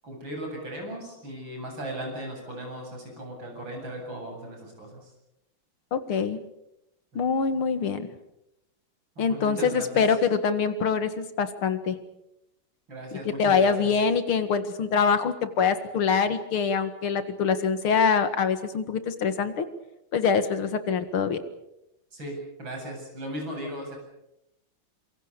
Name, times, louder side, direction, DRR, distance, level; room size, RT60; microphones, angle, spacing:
voice 1, 0.0-5.1 7.1-7.3 9.2-10.0 12.9-13.9 22.1-24.0, right 1 dB, 65° right, 2 dB, 9.0 m, -37 dB
voice 2, 5.9-6.4 7.2-8.1 9.2-12.0 13.1-19.7 20.1-21.4, left 6 dB, 80° left, 10 dB, 2.7 m, -24 dB
26.5 x 24.0 x 6.9 m, 0.85 s
omnidirectional pair, 2.3 m